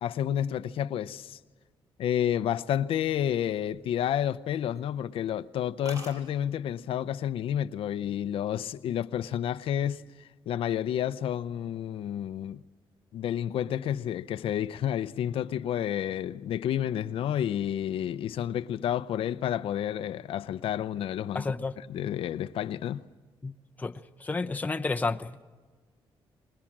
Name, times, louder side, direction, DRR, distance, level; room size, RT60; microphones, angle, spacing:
voice 1, 0.0-1.4 2.0-10.0 10.5-12.6 13.1-23.0, left 10 dB, 80° left, 0.6 m, -30 dB
sound 1, 3.4-4.4 4.7-5.0 5.3-5.4 5.6-5.7 5.9-6.2 7.1-7.4 7.8-8.2, right 1 dB, 35° right, 6.4 m, -46 dB
voice 2, 21.3-21.8 23.4-25.4, left 3 dB, 15° left, 0.8 m, -31 dB
25.0 x 20.5 x 7.4 m
cardioid pair, 130°, 9 cm